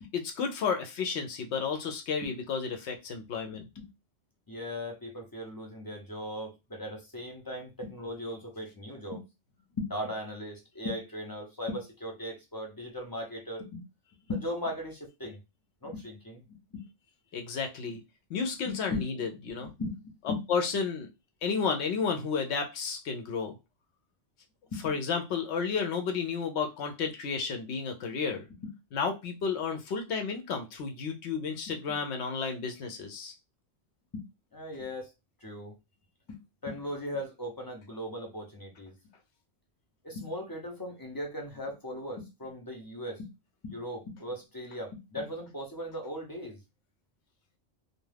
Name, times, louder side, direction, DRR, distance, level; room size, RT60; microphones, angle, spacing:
voice 1, 0.1-3.7 17.3-18.0 18.3-19.7 20.3-21.1 21.4-23.6 24.8-28.5 28.9-33.3, left 5 dB, 70° left, 5 dB, 0.8 m, -32 dB
voice 2, 4.5-9.3 9.7-13.8 14.3-15.4 15.8-16.9 18.6-19.0 19.6-19.9 20.3-20.4 24.7-24.8 28.5-28.7 31.7-32.0 34.1-34.2 34.5-35.1 35.4-35.7 36.3-38.9 40.0-43.3 43.6-46.6, left 1 dB, 30° left, 1 dB, 0.4 m, -38 dB
2.3 x 2.3 x 3.2 m, 0.25 s
omnidirectional pair, 1.2 m